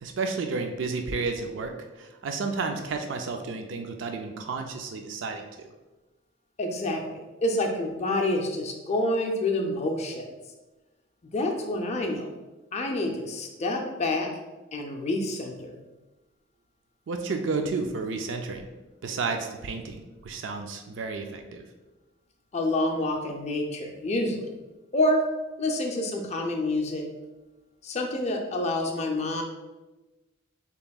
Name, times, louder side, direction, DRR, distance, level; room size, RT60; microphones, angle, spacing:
voice 1, 0.0-5.7 17.1-18.7 19.0-21.6, right 4 dB, 60° right, 4 dB, 0.4 m, -32 dB
voice 2, 6.6-10.3 11.2-12.3 12.7-14.3 14.7-15.8 22.5-24.5 24.9-25.2 25.6-27.0 27.8-29.4, left 1 dB, 35° left, 3 dB, 0.4 m, -28 dB
6.8 x 2.9 x 2.3 m, 1.1 s
head